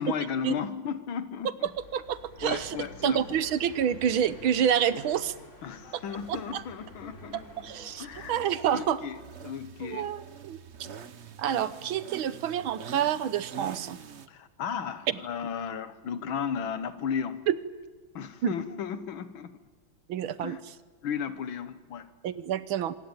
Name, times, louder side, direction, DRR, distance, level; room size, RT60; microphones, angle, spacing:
voice 1, 0.0-1.7 2.4-3.4 5.6-7.5 8.0-8.3 8.7-10.1 14.3-17.4 18.1-19.6 20.4-20.6 21.0-22.1, left 7 dB, 75° left, 12 dB, 2.0 m, -34 dB
sound 1, 1.6-8.3, left 1 dB, 35° left, 4.1 m, -48 dB
voice 2, 1.9-2.8 3.0-5.3 6.3-6.6 7.3-9.0 9.8-10.6 11.4-14.0 15.1-15.2 17.5-17.6 18.4-18.5 20.1-20.6 22.2-22.9, right 9 dB, 80° right, 14 dB, 1.8 m, -28 dB
sound 2, 6.1-14.3, right 7 dB, 45° right, 1.0 m, -46 dB
25.5 x 21.5 x 9.1 m, 1.3 s
omnidirectional pair, 2.2 m